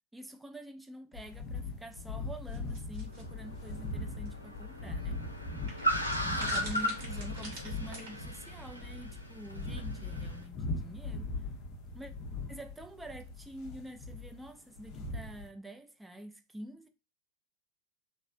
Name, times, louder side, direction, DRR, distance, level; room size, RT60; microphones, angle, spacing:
voice 1, 0.1-5.2 6.2-11.3 11.9-12.1 12.5-16.9, right 1 dB, 5° right, 0.4 m, -47 dB
sound 1, 1.1-15.5, left 3 dB, 35° left, 0.6 m, -40 dB
sound 2, 2.5-3.2 4.3-4.4 4.6-4.7 5.7-8.1, right 2 dB, 45° right, 1.5 m, -45 dB
Car, 3.0-10.4, equal, 90° left, 0.5 m, -37 dB
3.1 x 2.6 x 2.5 m
figure-of-eight pair, 90°, 0 cm